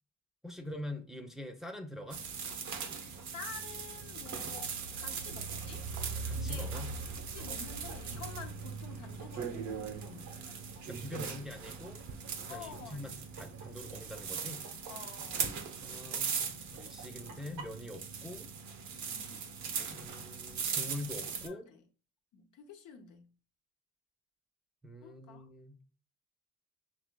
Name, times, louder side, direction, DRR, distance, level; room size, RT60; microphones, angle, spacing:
voice 1, 0.4-2.2 6.2-6.9 7.4-7.5 10.9-12.0 12.5-14.7 15.8-18.5 19.9-21.6 24.8-25.8, left 1 dB, ahead, 0.6 m, -44 dB
sound 1, 2.1-21.5, right 5 dB, 70° right, 0.8 m, -39 dB
voice 2, 3.3-5.9 6.3-6.7 7.2-10.3 12.5-13.3 14.9-15.5 19.1-19.4 21.4-21.8 22.3-23.3 25.0-25.5, left 6 dB, 80° left, 0.8 m, -49 dB
sound 2, 4.5-17.6, right 5 dB, 85° right, 1.1 m, -56 dB
6.1 x 2.9 x 2.2 m
cardioid pair, 90°, 30 cm